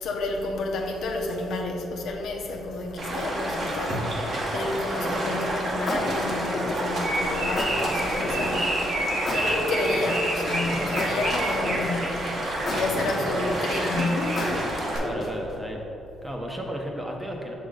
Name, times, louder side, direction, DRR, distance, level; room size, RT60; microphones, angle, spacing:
voice 1, 0.0-9.0 9.3-12.3 12.7-15.1, left 2 dB, 75° left, 1 dB, 0.8 m, -30 dB
Stream, 3.0-15.0, right 1 dB, 50° right, 1.4 m, -29 dB
sound 1, 5.0-5.3 5.9-7.0 7.6-8.5 9.3-10.4 11.0-12.1 12.7-13.8 14.4-15.5, left 2 dB, 40° left, 1.2 m, -32 dB
sound 2, 7.0-14.5, right 1 dB, 70° right, 1.4 m, -31 dB
voice 2, 13.2-13.5 15.0-15.8 16.2-17.5, equal, 10° right, 0 dB, 0.9 m, -33 dB
6.2 x 4.9 x 4.0 m, 3.0 s
cardioid pair, 90°, 0 cm